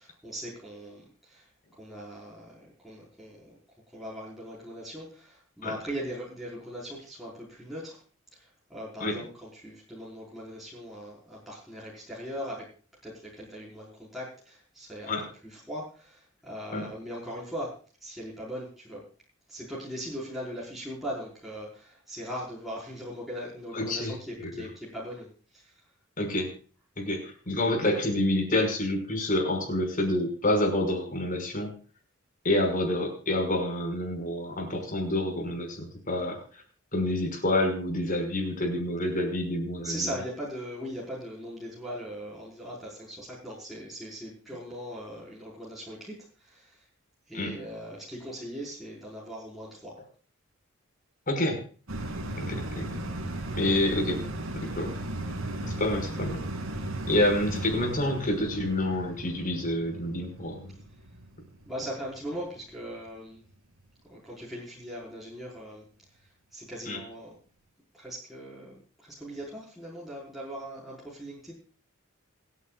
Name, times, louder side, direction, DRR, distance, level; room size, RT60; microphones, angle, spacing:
voice 1, 0.0-1.5 1.8-3.6 3.9-8.0 8.3-12.7 13.0-15.2 15.4-19.0 19.5-25.8 39.8-46.8 47.3-50.0 61.6-63.4 64.1-65.9 66.2-67.4 67.9-71.5, equal, ahead, -7 dB, 5.0 m, -40 dB
voice 2, 23.7-24.1 24.4-24.5 26.2-26.5 27.0-31.7 32.4-36.6 36.9-39.9 47.3-47.5 51.3-51.6 52.4-53.0 53.6-54.2 54.5-54.9 55.6-56.5 57.1-60.7 66.9-67.0, left 1 dB, 40° left, 3 dB, 5.8 m, -28 dB
sound 1, 51.9-62.6 63.0-63.1, right 1 dB, 80° right, 2.8 m, -36 dB
27.5 x 9.6 x 2.5 m, 0.39 s
head